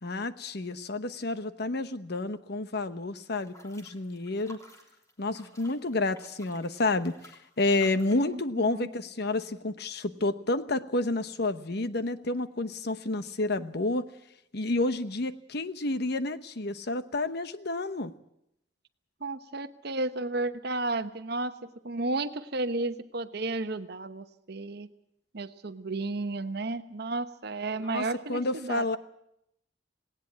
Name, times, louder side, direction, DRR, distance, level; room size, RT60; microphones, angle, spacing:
voice 1, 0.0-4.6 5.2-14.1 14.5-18.1 27.8-29.0, left 2 dB, 60° left, 12 dB, 1.0 m, -30 dB
sound 1, 3.3-8.3, equal, 20° left, 3.3 m, -54 dB
voice 2, 8.2-8.9 19.2-24.9 25.3-29.0, right 2 dB, 60° right, 11 dB, 1.0 m, -33 dB
18.5 x 18.0 x 8.6 m, 0.78 s
head